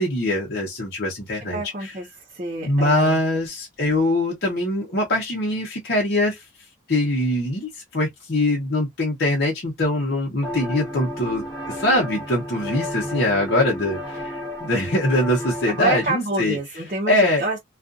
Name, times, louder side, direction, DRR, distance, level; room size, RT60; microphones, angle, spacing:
voice 1, 0.0-1.9 2.6-6.4 6.9-14.3 14.6-16.6 17.1-17.4, left 1 dB, 55° left, 0.9 m, -23 dB
voice 2, 1.5-3.2 15.7-17.6, right 2 dB, 40° right, 0.7 m, -27 dB
sound 1, 10.4-16.1, left 1 dB, 15° left, 1.0 m, -32 dB
2.5 x 2.4 x 2.4 m
head